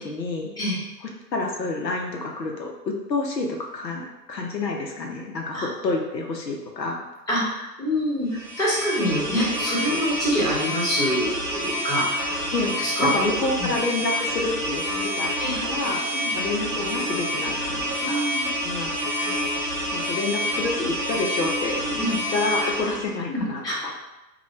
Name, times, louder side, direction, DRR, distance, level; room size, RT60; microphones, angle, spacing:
voice 1, 0.0-0.5 1.3-2.7 3.1-7.0 12.5-15.3 15.6-16.0 16.3-18.3 18.6-19.1 19.9-21.8 22.1-23.9, left 3 dB, 85° left, 1 dB, 0.8 m, -28 dB
voice 2, 7.3-12.4 12.8-13.3 13.6-13.7 15.4-15.6 16.1-16.3 18.0-18.5 21.8-22.1 22.6-22.7 23.3-23.8, equal, 5° left, -10 dB, 1.1 m, -26 dB
sound 1, 8.3-23.1, equal, 20° right, 0.5 m, -28 dB
3.0 x 2.3 x 4.1 m, 0.98 s
figure-of-eight pair, 120°, 49 cm